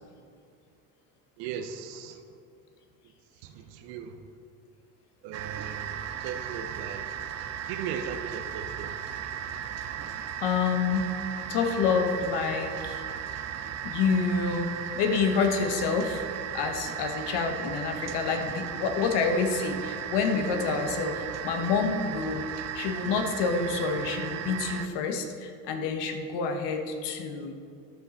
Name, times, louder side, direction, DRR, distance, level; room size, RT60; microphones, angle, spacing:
voice 1, 1.4-2.4 3.4-4.3 5.2-6.0 6.2-7.1 7.7-9.0, right 7 dB, 70° right, 7 dB, 0.9 m, -38 dB
sound 1, 5.3-24.9, right 9 dB, 35° right, 0.6 m, -36 dB
voice 2, 10.4-11.1 11.5-13.0 13.8-14.7 15.0-16.2 16.5-22.5 22.7-27.5, left 5 dB, 60° left, 5 dB, 1.3 m, -28 dB
12.5 x 5.5 x 4.2 m, 2.4 s
hypercardioid pair, 75°, 46 cm